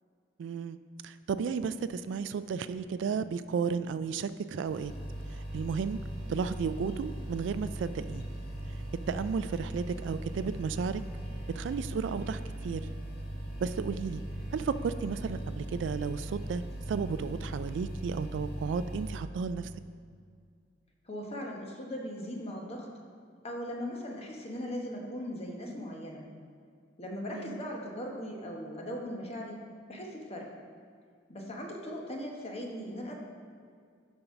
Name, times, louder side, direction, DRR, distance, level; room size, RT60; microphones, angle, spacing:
voice 1, 0.4-0.8 1.0-4.9 5.3-6.0 6.3-8.2 9.1-11.0 11.5-12.9 13.6-14.2 14.5-19.7 27.3-27.6, right 5 dB, 70° right, 13 dB, 0.3 m, -33 dB
sound 1, 4.7-19.2, right 1 dB, 60° left, 1.7 m, -39 dB
voice 2, 9.1-9.4 21.0-22.9 23.4-26.2 27.0-29.6 29.9-30.5 31.3-33.2, equal, 35° left, 0 dB, 1.1 m, -39 dB
7.0 x 5.4 x 5.9 m, 2.2 s
head